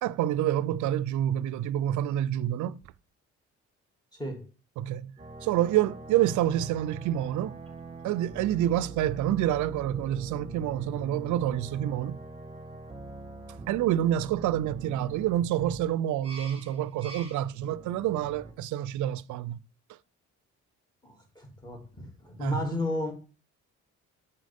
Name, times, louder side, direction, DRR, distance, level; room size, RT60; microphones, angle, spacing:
voice 1, 0.0-2.8 4.8-5.1 5.4-7.6 8.0-12.2 13.7-19.6 22.4-22.6, right 12 dB, 75° right, 0.4 m, -28 dB
voice 2, 4.1-4.4 21.0-23.1, left 1 dB, 15° left, 2.4 m, -33 dB
sound 1, 5.2-18.5, right 3 dB, 20° right, 1.4 m, -44 dB
7.5 x 5.7 x 3.5 m
cardioid pair, 90°, 30 cm